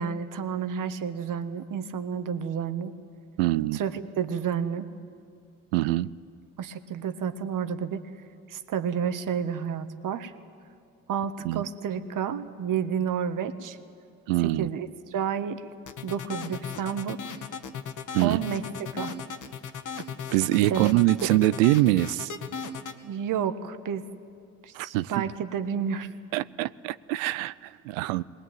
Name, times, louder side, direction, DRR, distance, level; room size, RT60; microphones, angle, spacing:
voice 1, 0.0-2.9 3.7-4.9 6.6-8.0 8.5-10.3 11.1-13.8 14.4-15.6 16.0-17.2 18.2-18.6 18.9-19.2 20.7-20.9 21.2-21.3 23.0-24.1 24.6-26.1, right 7 dB, 55° right, 10 dB, 1.4 m, -30 dB
voice 2, 3.4-3.8 5.7-6.1 11.4-11.6 14.3-14.7 18.1-18.4 20.3-22.3 24.7-25.2 26.3-28.2, right 17 dB, 85° right, 17 dB, 0.5 m, -24 dB
sound 1, 15.9-23.0, left 6 dB, 50° left, 1.6 m, -37 dB
20.0 x 19.5 x 9.2 m, 2.4 s
hypercardioid pair, 65°, 39 cm